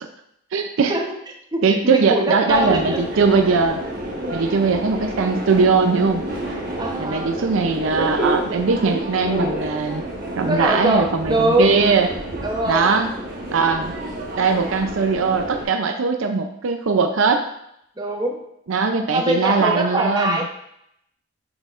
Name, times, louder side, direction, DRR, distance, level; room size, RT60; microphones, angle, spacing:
voice 1, 0.5-0.9 1.6-3.8 4.3-6.2 7.0-10.0 10.4-12.1 12.7-13.1 13.5-13.9 14.4-17.5 18.7-20.4, right 4 dB, 80° right, 5 dB, 0.5 m, -20 dB
voice 2, 1.5-3.0 4.2-4.3 6.8-7.3 10.4-11.7 12.4-13.0 18.0-18.4 19.1-20.5, right 1 dB, 20° right, 1 dB, 0.8 m, -22 dB
Subway metro underground, 2.5-15.6, right 1 dB, 45° right, 1.1 m, -29 dB
6.3 x 6.2 x 2.5 m, 0.76 s
head